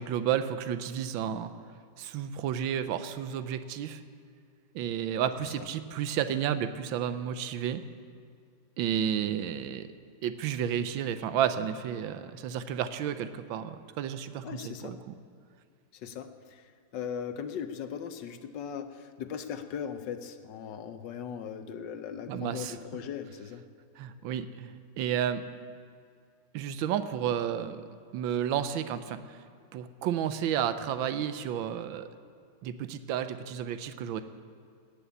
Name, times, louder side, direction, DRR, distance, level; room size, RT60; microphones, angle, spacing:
voice 1, 0.0-1.5 2.0-4.0 4.7-7.8 8.8-9.9 10.2-15.1 22.3-22.7 24.0-24.7 25.0-25.4 26.5-27.8 28.1-29.4 29.7-32.1 32.6-34.2, right 9 dB, 85° right, 11 dB, 1.5 m, -31 dB
voice 2, 14.4-15.0 15.9-23.6, left 7 dB, 70° left, 9 dB, 1.4 m, -39 dB
19.0 x 7.0 x 8.3 m, 2.3 s
omnidirectional pair, 2.1 m